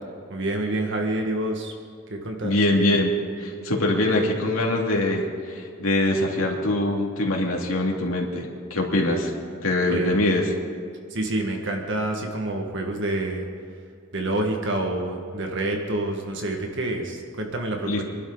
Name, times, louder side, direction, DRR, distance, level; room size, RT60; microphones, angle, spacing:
voice 1, 0.3-1.7 2.1-2.6 9.9-10.2 11.1-13.5 14.1-18.0, right 1 dB, 60° right, 2 dB, 1.8 m, -27 dB
voice 2, 2.4-3.1 3.4-9.3 9.6-10.5 17.9-18.0, left 1 dB, 90° left, 0 dB, 2.5 m, -23 dB
25.5 x 12.0 x 4.0 m, 2.3 s
head